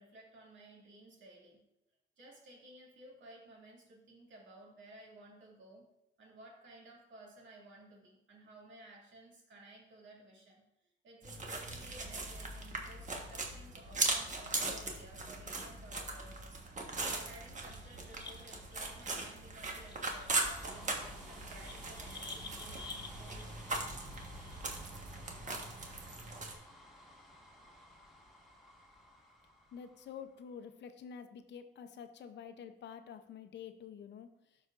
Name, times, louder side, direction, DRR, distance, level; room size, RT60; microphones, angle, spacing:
voice 1, 0.0-1.6 2.2-5.9 6.2-10.6 11.0-16.6 17.1-23.6, right 1 dB, 70° right, -2 dB, 2.5 m, -56 dB
sound 1, 11.2-26.5, right 3 dB, 40° right, 1.3 m, -39 dB
sound 2, 17.5-19.1 19.6-24.6, left 4 dB, 20° left, 0.9 m, -51 dB
sound 3, 20.0-30.5, left 1 dB, ahead, 1.8 m, -54 dB
voice 2, 29.7-34.3, left 7 dB, 60° left, 9 dB, 0.7 m, -48 dB
12.0 x 5.0 x 2.5 m, 0.85 s
cardioid pair, 90°, 20 cm